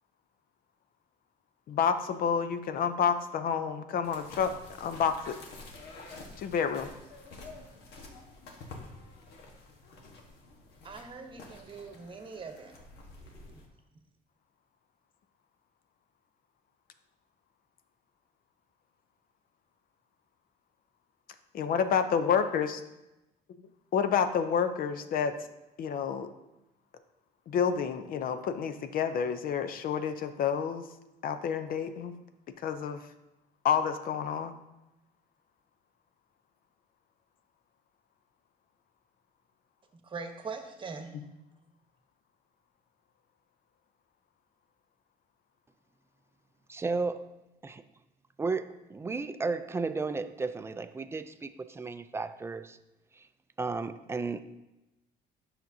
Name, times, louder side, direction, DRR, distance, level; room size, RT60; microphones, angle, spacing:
voice 1, 1.7-4.5 4.8-5.4 6.4-6.9 21.5-22.8 23.9-25.3 25.8-26.3 27.5-30.8 31.2-32.1 32.6-33.0 33.6-34.5, left 7 dB, 60° left, 9 dB, 0.6 m, -29 dB
sound 1, 4.0-13.7, left 2 dB, 75° left, 1.3 m, -49 dB
voice 2, 10.8-12.8 13.2-13.6 40.0-41.2, right 4 dB, 30° right, 5 dB, 1.0 m, -42 dB
voice 3, 46.7-47.3 47.6-47.8 48.4-52.8 53.2-53.3 53.6-54.4, right 4 dB, 15° right, 10 dB, 0.4 m, -33 dB
9.0 x 5.9 x 2.7 m, 0.96 s
cardioid pair, 110°, 17 cm